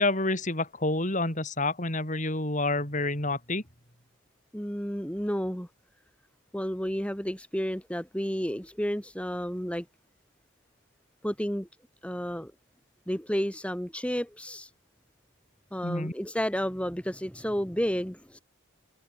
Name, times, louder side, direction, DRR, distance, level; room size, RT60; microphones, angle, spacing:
voice 1, 0.0-3.6 15.8-16.1, left 2 dB, 40° left, 5.3 m, -28 dB
voice 2, 4.5-5.7 6.5-9.8 11.2-11.7 12.0-12.5 13.1-14.7 15.7-18.4, equal, 5° left, 3.1 m, -31 dB
head